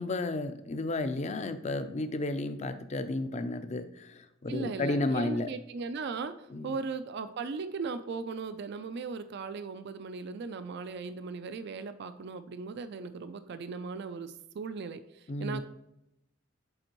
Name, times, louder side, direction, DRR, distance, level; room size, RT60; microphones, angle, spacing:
voice 1, 0.0-5.5 6.5-6.8 15.3-15.6, left 2 dB, 35° left, 10 dB, 0.5 m, -32 dB
voice 2, 4.5-15.6, right 4 dB, 55° right, 11 dB, 0.4 m, -38 dB
7.8 x 4.3 x 3.0 m, 0.85 s
head